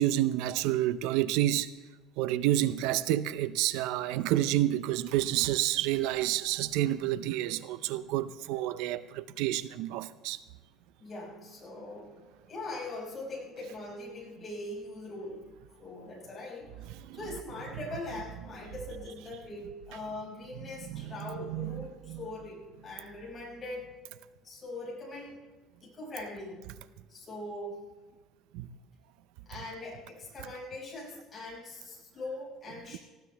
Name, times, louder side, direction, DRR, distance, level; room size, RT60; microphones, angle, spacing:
voice 1, 0.0-1.7 2.2-10.4 17.1-17.2 20.9-21.8 22.1-22.2 28.5-28.7, right 13 dB, 75° right, 0.5 m, -29 dB
voice 2, 11.0-12.1 12.5-15.4 15.8-23.9 24.4-25.4 25.8-26.6 27.1-27.8 29.5-33.0, left 2 dB, 20° left, 5.6 m, -41 dB
18.5 x 16.0 x 3.4 m
cardioid pair, 170°, 0 cm